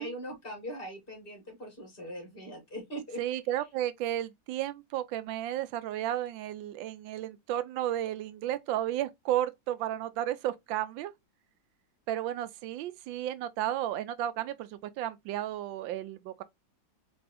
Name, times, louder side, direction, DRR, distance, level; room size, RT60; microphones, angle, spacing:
voice 1, 0.0-3.2, equal, 30° left, 1.8 m, -41 dB
voice 2, 3.2-11.1 12.1-14.7 15.0-16.4, right 12 dB, 85° right, 1.3 m, -33 dB
4.3 x 3.4 x 3.3 m
omnidirectional pair, 2.0 m